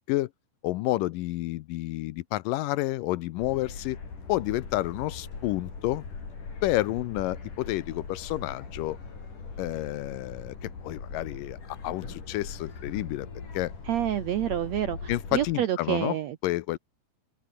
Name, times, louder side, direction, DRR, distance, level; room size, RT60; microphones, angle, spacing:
voice 1, 0.6-4.0 4.3-6.0 6.6-9.0 9.6-13.3 13.5-13.7 15.1-16.2 16.4-16.8, left 17 dB, 80° left, 2.1 m, -30 dB
sound 1, 3.4-15.5, left 4 dB, 55° left, 7.0 m, -40 dB
voice 2, 13.9-16.4, right 11 dB, 75° right, 1.6 m, -28 dB
open air
omnidirectional pair, 4.4 m